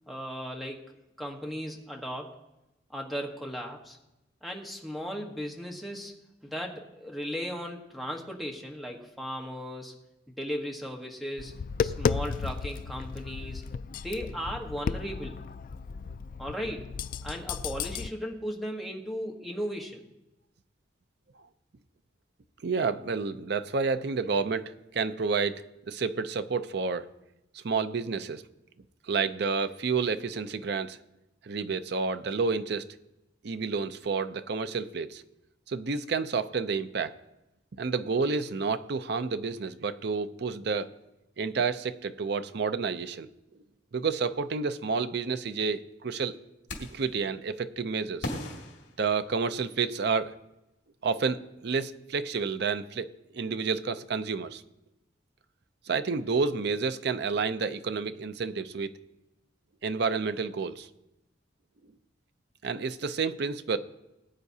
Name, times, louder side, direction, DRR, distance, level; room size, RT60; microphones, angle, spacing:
voice 1, 0.1-0.8 1.2-2.4 2.9-4.0 4.4-6.1 6.4-9.9 10.3-11.5 11.8-13.6 13.9-15.4 16.4-16.9 17.2-20.0, equal, ahead, 0 dB, 1.2 m, -36 dB
Tap, 11.4-18.1, left 5 dB, 45° left, 0.3 m, -33 dB
voice 2, 22.6-27.1 27.5-28.4 29.1-31.0 31.4-32.9 33.4-35.2 35.7-37.1 37.8-40.9 41.4-43.3 43.9-46.3 46.8-48.3 49.0-50.3 51.0-53.1 53.3-54.6 55.9-58.9 59.8-60.9 62.6-63.8, right 4 dB, 60° right, 12 dB, 0.5 m, -30 dB
sound 1, 46.7-47.2 48.2-49.7, left 1 dB, 70° left, 2.1 m, -38 dB
19.5 x 8.8 x 2.8 m, 0.94 s
head